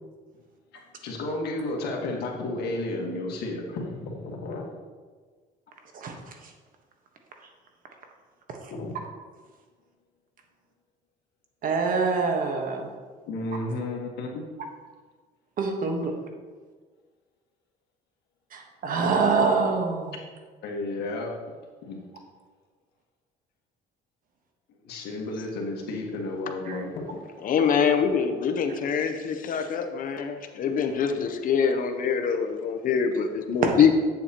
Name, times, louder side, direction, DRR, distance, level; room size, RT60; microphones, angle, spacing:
voice 1, 0.7-4.7 8.7-9.0 13.3-14.4 20.6-21.4 21.9-22.0 24.7-27.1, left 2 dB, 75° left, 0 dB, 1.6 m, -32 dB
voice 2, 11.6-12.9 15.6-16.1 18.5-20.1 26.7-26.8 33.6-33.9, right 4 dB, 55° right, 3 dB, 1.3 m, -25 dB
voice 3, 27.1-34.0, left 7 dB, 55° left, 7 dB, 0.7 m, -24 dB
8.4 x 7.6 x 2.9 m, 1.5 s
cardioid pair, 110°, 17 cm